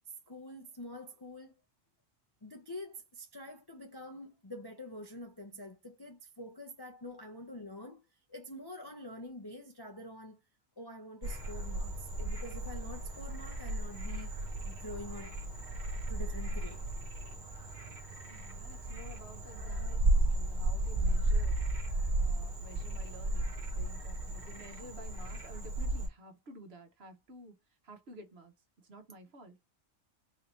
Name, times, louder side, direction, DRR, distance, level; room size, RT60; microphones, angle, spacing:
voice 1, 0.3-1.5 2.4-8.0 8.3-10.4 10.8-14.3 14.6-15.4 16.1-16.8, left 1 dB, 30° left, 0.5 m, -46 dB
Frog, 11.2-26.1, right 1 dB, 40° right, 1.0 m, -34 dB
voice 2, 18.3-21.6 22.2-27.6 27.8-29.6, equal, 55° right, 1.2 m, -52 dB
4.2 x 2.8 x 3.0 m
omnidirectional pair, 1.3 m